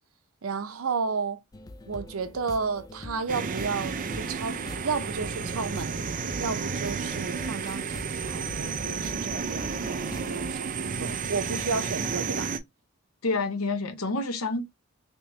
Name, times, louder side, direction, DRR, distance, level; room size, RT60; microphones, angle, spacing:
voice 1, 0.4-1.4 1.9-6.0 6.4-12.5, right 4 dB, 85° right, 0.7 m, -32 dB
sound 1, 1.5-10.5, left 2 dB, 20° left, 0.3 m, -44 dB
sound 2, 3.3-12.6, right 5 dB, 40° right, 0.4 m, -32 dB
voice 2, 13.2-14.6, left 3 dB, 90° left, 0.8 m, -28 dB
3.4 x 2.9 x 2.8 m
head